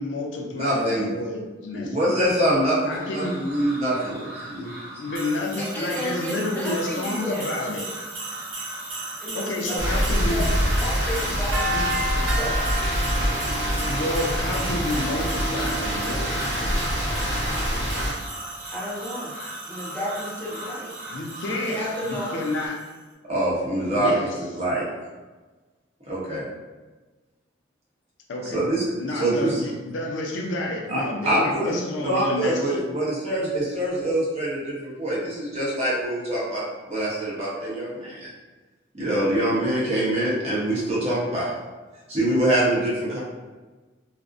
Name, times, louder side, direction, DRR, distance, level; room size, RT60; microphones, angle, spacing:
voice 1, 0.0-2.2 2.8-3.3 4.9-7.9 9.3-10.5 11.6-11.9 13.9-17.0 21.1-22.8 23.9-24.3 28.3-28.6 29.0-32.8, left 2 dB, 70° left, 0 dB, 0.4 m, -30 dB
voice 2, 0.5-1.1 1.7-4.7 23.2-24.3 24.6-24.8 26.1-26.4 28.5-29.6 30.9-38.3 38.9-41.6 42.1-43.2, right 1 dB, 35° right, -7 dB, 0.8 m, -24 dB
sound 1, 2.9-22.7, equal, 45° left, 1.1 m, -39 dB
sound 2, 5.1-22.9, right 2 dB, 75° right, 0.5 m, -35 dB
voice 3, 5.6-7.5 9.2-10.5 10.8-12.7 18.7-19.3 19.7-20.9 21.5-22.4, equal, 10° left, -5 dB, 0.5 m, -33 dB
Rain, 9.8-18.1, equal, 60° right, 1.0 m, -25 dB
2.4 x 2.0 x 2.5 m, 1.3 s
head